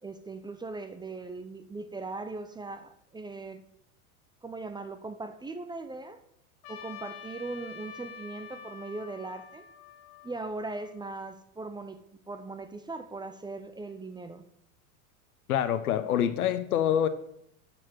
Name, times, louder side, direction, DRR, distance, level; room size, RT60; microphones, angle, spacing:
voice 1, 0.0-3.6 4.4-6.2 6.7-9.7 10.2-12.0 12.3-14.4, right 3 dB, 10° right, 9 dB, 0.6 m, -39 dB
Trumpet, 6.6-11.1, left 7 dB, 60° left, 1.7 m, -47 dB
voice 2, 15.5-17.1, left 10 dB, 85° left, 12 dB, 0.9 m, -26 dB
8.9 x 4.5 x 6.2 m, 0.74 s
hypercardioid pair, 100°, 43 cm